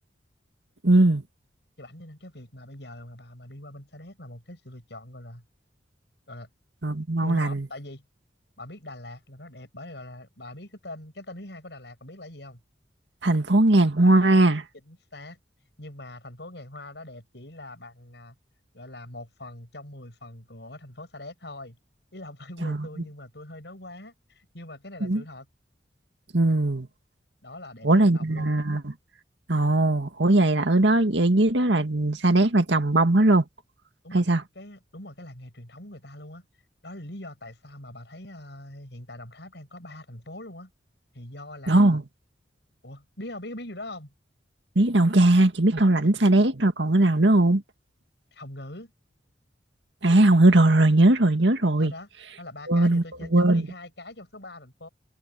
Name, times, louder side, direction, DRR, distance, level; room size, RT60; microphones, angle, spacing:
voice 1, 0.8-1.2 6.8-7.7 13.2-14.6 22.6-22.9 25.0-25.2 26.3-26.9 27.8-28.9 29.5-33.4 34.1-34.4 41.7-42.0 44.8-47.6 50.0-51.9 52.7-53.0 53.3-53.7, right 2 dB, 85° right, 2.1 m, -19 dB
voice 2, 1.8-5.4 6.3-6.5 7.2-8.0 8.6-12.6 14.8-15.4 15.8-18.3 18.7-21.8 22.1-25.5 27.4-28.5 34.0-34.2 34.5-36.4 36.8-40.7 41.1-42.0 42.8-44.1 48.3-48.9 51.8-52.1 52.4-54.9, left 1 dB, 70° left, 6.7 m, -42 dB
head